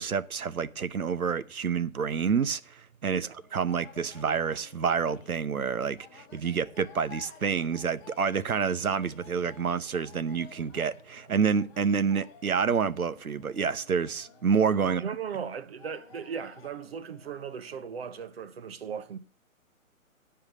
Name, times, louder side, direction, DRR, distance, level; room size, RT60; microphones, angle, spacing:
voice 1, 0.0-15.1, right 6 dB, 80° right, 0.9 m, -28 dB
sound 1, 3.4-18.3, left 7 dB, 20° left, 1.2 m, -53 dB
voice 2, 14.8-19.2, right 7 dB, 45° right, 1.0 m, -37 dB
9.7 x 5.7 x 7.9 m
figure-of-eight pair, 140°, 42 cm